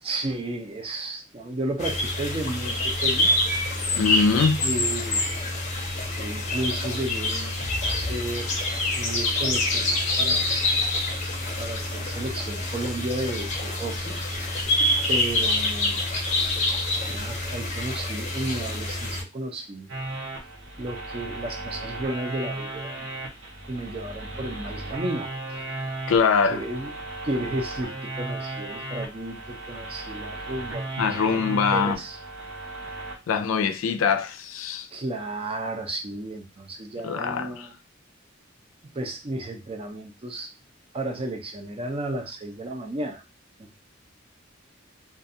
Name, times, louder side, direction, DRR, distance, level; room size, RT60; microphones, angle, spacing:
voice 1, 0.0-3.3 4.6-5.3 6.2-8.5 8.9-10.5 11.6-14.1 15.1-16.0 17.1-19.9 20.8-23.1 23.7-25.9 26.5-26.9 27.2-32.2 34.9-37.7 38.9-40.5 40.9-43.2 43.6-43.8, right 2 dB, 30° right, 0.5 m, -33 dB
sound 1, 1.8-19.2, left 2 dB, 35° left, 0.6 m, -26 dB
voice 2, 3.9-4.6 26.1-26.6 31.0-32.0 33.3-34.9 37.0-37.7, left 5 dB, 85° left, 0.4 m, -23 dB
sound 2, 19.9-33.2, right 2 dB, 65° right, 0.8 m, -35 dB
2.4 x 2.2 x 2.6 m
head